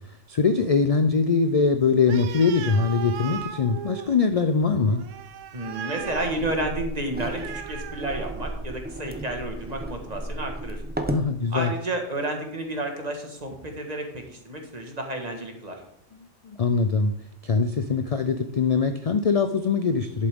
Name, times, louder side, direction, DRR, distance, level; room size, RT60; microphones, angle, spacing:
voice 1, 0.3-5.0 11.1-11.7 16.1-17.1 17.4-20.3, left 5 dB, 55° left, 8 dB, 0.4 m, -22 dB
Animal, 2.1-8.8, right 9 dB, 90° right, 1.0 m, -38 dB
voice 2, 5.5-10.8 11.5-15.8, right 1 dB, 35° right, 2 dB, 1.6 m, -31 dB
sound 1, 6.0-11.3, right 1 dB, 10° right, 0.6 m, -34 dB
11.0 x 8.3 x 3.6 m, 0.75 s
omnidirectional pair, 1.3 m